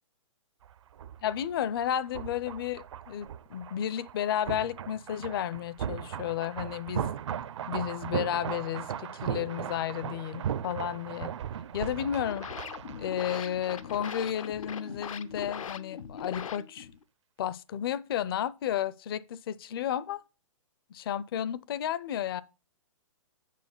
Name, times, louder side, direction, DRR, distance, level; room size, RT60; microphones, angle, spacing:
sound 1, 0.6-14.4 14.7-14.8, right 9 dB, 60° right, 0.7 m, -38 dB
voice 1, 1.2-7.1 7.7-11.3 11.7-12.5 13.0-16.9 17.4-20.2 20.9-22.4, left 10 dB, 45° left, 0.6 m, -32 dB
sound 2, 12.1-17.0, left 7 dB, 80° left, 0.8 m, -41 dB
7.5 x 5.9 x 7.2 m
hypercardioid pair, 155°, 17 cm